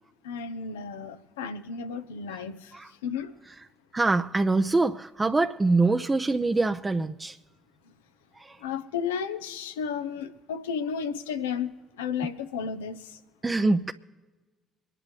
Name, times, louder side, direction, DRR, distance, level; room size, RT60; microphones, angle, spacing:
voice 1, 0.2-2.7 3.0-3.3 8.6-11.7 12.0-13.2, left 6 dB, 80° left, 0.8 m, -33 dB
voice 2, 3.9-7.4 8.4-8.6 13.4-13.9, right 3 dB, 20° right, 0.6 m, -24 dB
25.5 x 11.0 x 3.3 m
hypercardioid pair, 50°, 0 cm